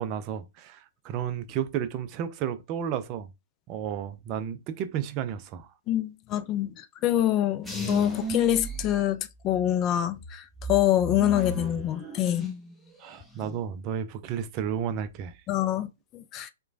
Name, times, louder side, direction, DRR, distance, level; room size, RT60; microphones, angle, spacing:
voice 1, 0.0-3.3 3.7-5.7 13.0-15.4, right 9 dB, 35° right, 0.4 m, -32 dB
voice 2, 5.9-10.4 10.7-12.5 15.5-15.9 16.1-16.5, left 12 dB, 30° left, 0.3 m, -25 dB
sound 1, 7.6-9.7 10.1-12.7 13.0-13.6, left 1 dB, 5° left, 0.7 m, -35 dB
2.9 x 2.2 x 2.6 m
hypercardioid pair, 120°, 0 cm